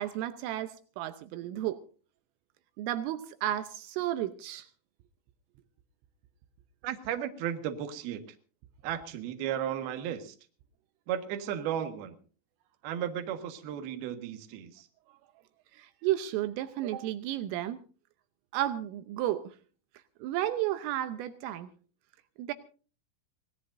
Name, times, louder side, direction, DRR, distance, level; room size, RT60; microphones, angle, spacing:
voice 1, 0.0-1.8 2.8-4.7 15.7-17.8 18.5-19.4 20.2-21.7 22.4-22.5, right 13 dB, 80° right, 10 dB, 3.4 m, -32 dB
voice 2, 6.8-8.4 8.8-10.4 11.1-12.2 12.8-14.9, right 10 dB, 60° right, 6 dB, 2.9 m, -34 dB
25.0 x 18.0 x 2.6 m, 0.38 s
omnidirectional pair, 5.9 m